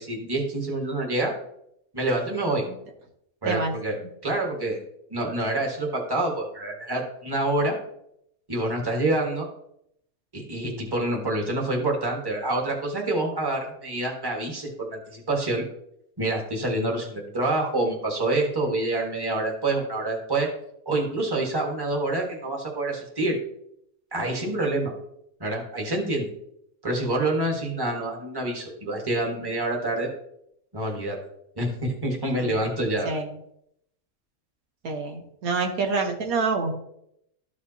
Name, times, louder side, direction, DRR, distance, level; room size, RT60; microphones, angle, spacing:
voice 1, 0.0-1.3 1.9-2.6 3.4-4.0 4.2-4.8 5.1-7.7 8.5-9.5 10.3-15.6 16.2-20.5 20.8-23.4 24.1-24.9 25.4-26.3 26.8-30.1 30.7-31.2 31.6-33.1, right 2 dB, 15° right, 0 dB, 1.4 m, -27 dB
voice 2, 34.8-36.8, right 4 dB, 75° right, 3 dB, 1.5 m, -27 dB
13.0 x 5.0 x 2.8 m, 0.75 s
omnidirectional pair, 1.5 m